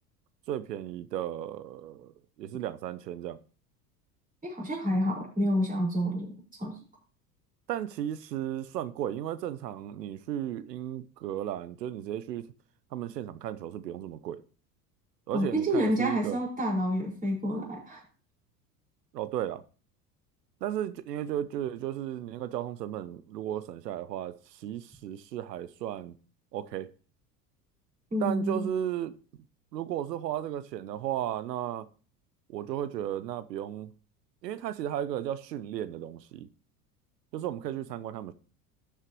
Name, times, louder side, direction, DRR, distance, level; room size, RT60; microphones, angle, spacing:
voice 1, 0.5-2.1 2.4-3.4 7.7-12.5 12.9-14.4 15.3-16.4 19.1-19.6 20.6-26.1 26.5-26.9 28.2-29.1 29.7-31.9 32.5-33.9 34.4-36.5 37.3-38.3, right 11 dB, 80° right, 0.7 m, -34 dB
voice 2, 4.4-6.3 6.6-6.7 15.3-18.0 28.1-28.7, equal, 15° right, 4.9 m, -28 dB
12.5 x 8.2 x 3.0 m
hypercardioid pair, 80°, 48 cm